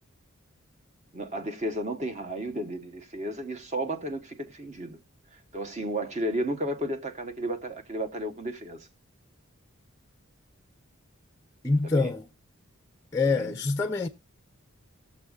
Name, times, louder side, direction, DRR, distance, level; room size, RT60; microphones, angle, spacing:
voice 1, 1.1-5.0 5.3-8.9 11.8-12.1 13.3-13.5, right 1 dB, 30° right, 0.9 m, -33 dB
voice 2, 11.6-12.3 13.1-14.1, left 3 dB, 15° left, 0.5 m, -25 dB
19.0 x 7.1 x 2.3 m
head